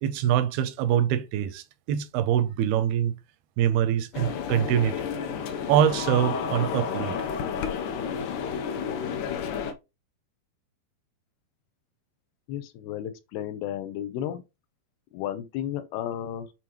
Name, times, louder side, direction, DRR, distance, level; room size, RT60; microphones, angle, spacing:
voice 1, 0.0-3.1 3.6-5.0 5.7-7.2, right 10 dB, 85° right, 2.6 m, -24 dB
sound 1, 4.1-9.7, left 7 dB, 75° left, 2.0 m, -31 dB
voice 2, 12.5-14.4 15.1-16.5, left 10 dB, 90° left, 2.8 m, -33 dB
9.1 x 3.8 x 3.0 m
omnidirectional pair, 4.4 m